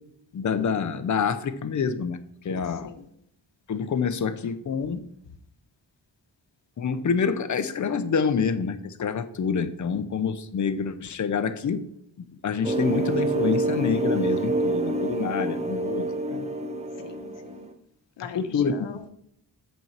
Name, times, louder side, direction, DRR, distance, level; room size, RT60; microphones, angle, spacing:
voice 1, 0.3-2.9 3.7-5.0 6.8-11.8 12.2-16.5 18.2-19.0, left 6 dB, 45° left, 10 dB, 0.7 m, -27 dB
sound 1, 12.6-17.7, right 2 dB, 15° right, 0.7 m, -27 dB
voice 2, 17.0-17.7 18.2-19.1, left 6 dB, 85° left, 8 dB, 1.0 m, -41 dB
8.2 x 4.5 x 5.9 m, 0.72 s
wide cardioid pair, 125°, 42 cm